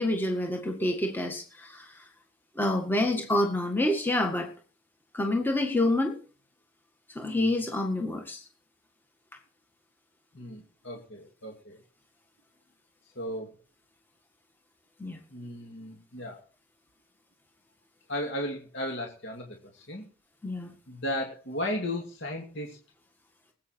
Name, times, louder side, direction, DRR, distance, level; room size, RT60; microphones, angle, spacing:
voice 1, 0.0-1.9 2.6-4.5 5.1-6.2 7.2-8.4 15.0-15.2 20.4-20.7, left 1 dB, 10° left, 3 dB, 1.7 m, -27 dB
voice 2, 7.2-7.6 10.3-11.8 13.2-13.5 15.3-16.4 18.1-19.5 19.7-20.1 20.9-22.8, left 1 dB, 55° left, 1 dB, 2.6 m, -35 dB
20.0 x 8.8 x 4.5 m, 0.39 s
head